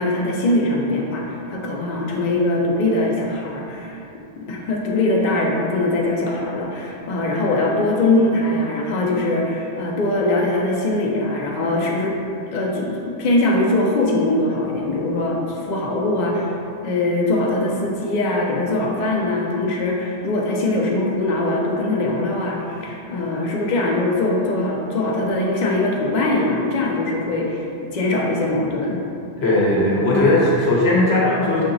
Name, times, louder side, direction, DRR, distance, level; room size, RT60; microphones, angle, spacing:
voice 1, 0.0-4.0 4.3-12.2 12.5-27.7 27.9-29.0, left 2 dB, 50° left, -2 dB, 0.6 m, -22 dB
voice 2, 29.4-31.6, left 1 dB, 70° left, -5 dB, 1.0 m, -17 dB
6.2 x 2.9 x 2.5 m, 2.7 s
omnidirectional pair, 1.1 m